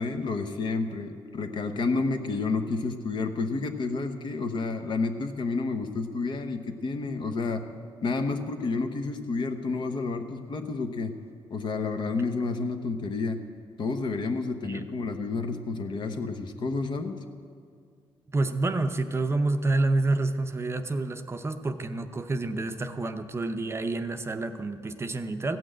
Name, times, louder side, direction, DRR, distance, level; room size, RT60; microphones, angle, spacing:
voice 1, 0.0-7.6 8.0-11.1 11.5-13.4 13.8-17.1, left 3 dB, 50° left, 6 dB, 1.0 m, -30 dB
voice 2, 18.3-25.6, right 2 dB, 25° right, 8 dB, 0.6 m, -28 dB
15.5 x 6.2 x 8.9 m, 2.2 s
cardioid pair, 95°, 10 cm